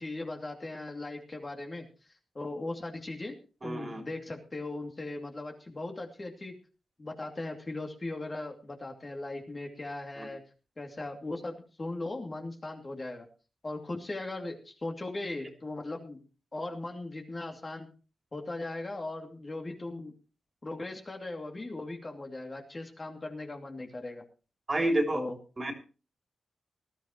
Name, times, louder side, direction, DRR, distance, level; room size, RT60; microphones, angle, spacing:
voice 1, 0.0-3.4 3.6-6.5 7.0-10.4 10.8-13.3 13.6-16.2 16.5-17.9 18.3-20.1 20.6-24.2 25.1-25.3, left 2 dB, 30° left, 3 dB, 2.5 m, -38 dB
voice 2, 3.6-4.0 10.2-10.3 24.7-25.2 25.6-25.7, right 1 dB, 25° right, 3 dB, 3.1 m, -29 dB
19.5 x 13.0 x 3.0 m, 0.34 s
wide cardioid pair, 110°, 0 cm